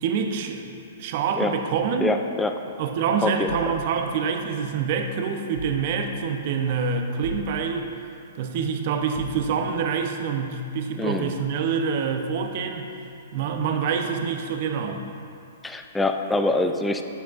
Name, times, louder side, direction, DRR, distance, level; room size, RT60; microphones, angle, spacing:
voice 1, 0.0-2.2 2.8-7.9 8.4-12.9 13.3-15.0, right 6 dB, 45° right, 5 dB, 0.6 m, -26 dB
voice 2, 2.0-2.6 3.2-3.6 11.0-11.3 15.6-17.0, left 2 dB, 10° left, 6 dB, 0.3 m, -24 dB
sound 1, 3.5-4.9 5.5-6.4 7.2-8.1 9.1-10.0, right 1 dB, 80° left, 0.8 m, -39 dB
9.4 x 6.9 x 2.4 m, 2.6 s
figure-of-eight pair, 115°, 0 cm